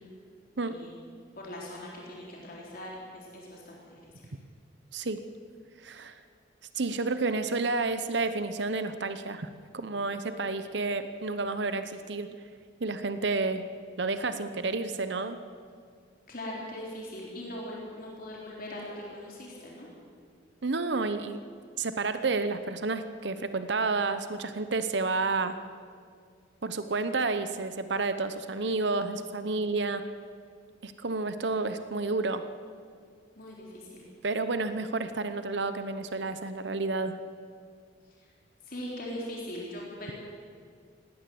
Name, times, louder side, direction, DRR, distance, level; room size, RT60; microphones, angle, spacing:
voice 1, 1.4-4.0 16.3-19.9 33.4-34.0 38.7-40.1, left 1 dB, 50° left, -3 dB, 3.7 m, -40 dB
voice 2, 4.9-5.2 5.8-6.2 6.8-9.5 9.7-12.4 12.8-13.6 14.0-15.4 20.6-21.4 21.8-25.6 26.6-30.0 30.8-32.5 34.2-37.2, right 3 dB, 65° right, 10 dB, 0.9 m, -30 dB
19.5 x 17.5 x 7.8 m, 2.1 s
head